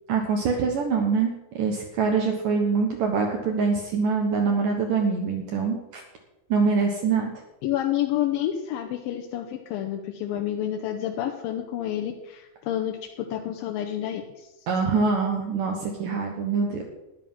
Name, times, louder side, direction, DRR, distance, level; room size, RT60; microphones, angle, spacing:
voice 1, 0.1-6.0 6.5-7.3 14.7-16.9, right 5 dB, 65° right, 1 dB, 2.7 m, -24 dB
voice 2, 7.6-14.5, left 11 dB, 75° left, 3 dB, 2.5 m, -29 dB
13.0 x 10.0 x 5.7 m, 1.0 s
omnidirectional pair, 4.4 m